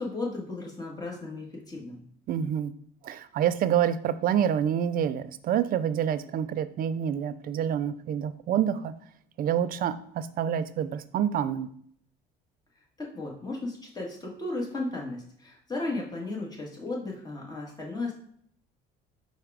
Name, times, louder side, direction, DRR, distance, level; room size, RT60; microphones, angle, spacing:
voice 1, 0.0-2.0 13.0-18.1, left 2 dB, 20° left, -2 dB, 1.6 m, -35 dB
voice 2, 2.3-2.7 3.0-8.9 9.4-11.7, right 9 dB, 45° right, 13 dB, 0.4 m, -27 dB
4.5 x 2.4 x 4.8 m, 0.64 s
supercardioid pair, 90°, 20 cm